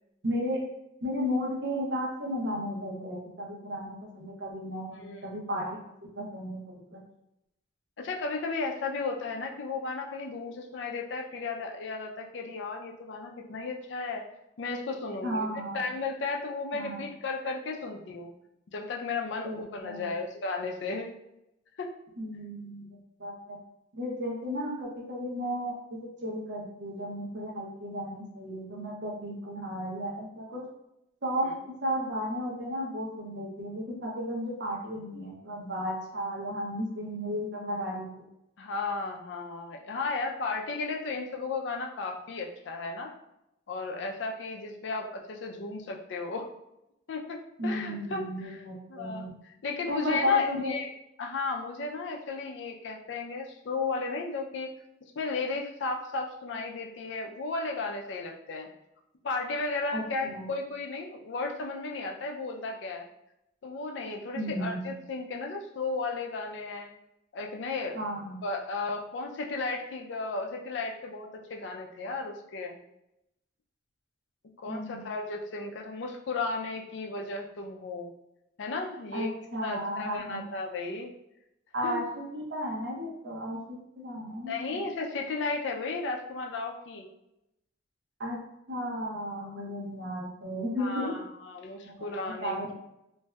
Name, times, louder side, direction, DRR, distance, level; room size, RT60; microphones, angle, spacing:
voice 1, 0.2-0.6 1.0-5.7 6.2-7.0 15.2-15.8 16.7-17.0 19.4-20.1 22.2-23.6 23.9-30.7 31.2-31.5 31.8-38.1 47.6-49.4 49.9-50.7 59.9-60.5 64.3-64.9 67.9-68.4 74.7-75.0 79.1-80.5 81.7-84.8 88.2-88.4 88.7-91.1 91.8-92.7, equal, 60° right, -2 dB, 0.8 m, -34 dB
voice 2, 8.0-14.2 14.6-15.5 15.7-18.3 18.7-21.1 21.8-21.9 38.6-43.1 43.7-46.5 47.1-48.6 48.9-50.9 51.2-54.7 55.2-58.7 59.2-63.1 63.6-66.9 67.3-68.0 68.4-72.8 74.6-78.1 78.6-79.3 79.6-81.1 81.8-82.0 84.5-87.1 90.8-92.6, left 3 dB, 65° left, 1 dB, 0.4 m, -34 dB
3.2 x 2.6 x 2.3 m, 0.85 s
head